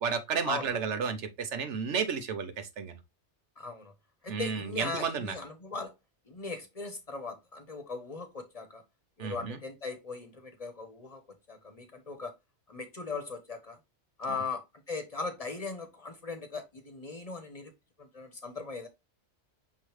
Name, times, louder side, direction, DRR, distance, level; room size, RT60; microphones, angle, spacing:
voice 1, 0.0-3.0 4.3-5.3 9.2-9.6 14.3-14.4, right 6 dB, 85° right, 1.1 m, -32 dB
voice 2, 3.6-3.9 4.2-5.9 6.3-8.8 9.2-11.2 11.5-12.3 12.7-13.8 14.2-17.7 18.0-18.9, left 4 dB, 35° left, 0.8 m, -39 dB
5.6 x 3.2 x 3.0 m
omnidirectional pair, 1.2 m